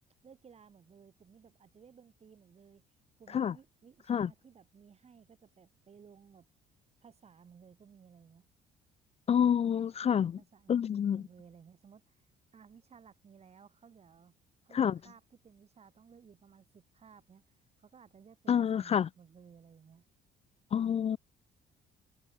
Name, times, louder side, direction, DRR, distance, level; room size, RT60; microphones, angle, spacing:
voice 1, 0.2-2.8 3.2-6.5 7.0-8.5 10.0-12.2 12.5-14.3 14.6-17.4 17.8-20.1, right 6 dB, 40° right, 6.1 m, -58 dB
voice 2, 9.3-10.4 10.7-11.2 14.7-15.0 18.5-19.1 20.7-21.2, left 8 dB, 40° left, 0.6 m, -28 dB
cardioid pair, 110°, 17 cm